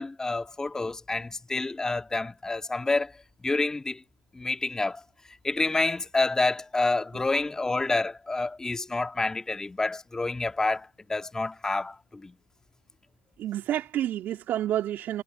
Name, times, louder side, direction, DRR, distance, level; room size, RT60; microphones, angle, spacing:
voice 1, 0.0-3.1 3.4-4.0 4.3-5.0 5.4-12.3, left 3 dB, 15° left, 1.8 m, -28 dB
voice 2, 13.4-15.2, right 12 dB, 50° right, 3.2 m, -29 dB
hypercardioid pair, 85°, 4 cm